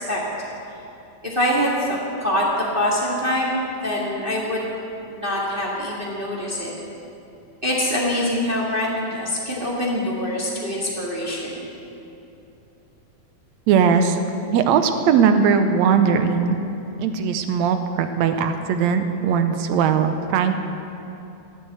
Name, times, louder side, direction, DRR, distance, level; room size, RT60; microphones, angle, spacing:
voice 1, 1.2-4.6 5.1-6.7 7.6-11.6, left 1 dB, 20° right, -5 dB, 1.7 m, -24 dB
voice 2, 13.7-14.2 14.5-16.6 17.0-20.5, right 6 dB, 75° right, 8 dB, 1.8 m, -19 dB
14.5 x 9.3 x 7.9 m, 2.9 s
omnidirectional pair, 3.6 m